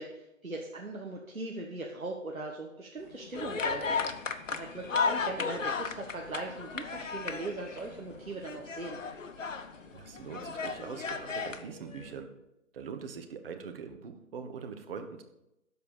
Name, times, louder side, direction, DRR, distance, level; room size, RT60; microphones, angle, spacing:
voice 1, 0.0-9.0, right 2 dB, 85° right, -1 dB, 1.4 m, -40 dB
sound 1, 3.0-12.2, left 4 dB, 35° left, 1.5 m, -54 dB
sound 2, 3.3-7.9 8.3-9.7 10.2-11.6, left 5 dB, 65° left, 0.9 m, -34 dB
voice 2, 9.9-12.3 12.7-15.2, right 6 dB, 45° right, 6 dB, 1.2 m, -42 dB
12.5 x 4.7 x 6.9 m, 0.89 s
figure-of-eight pair, 130°, 41 cm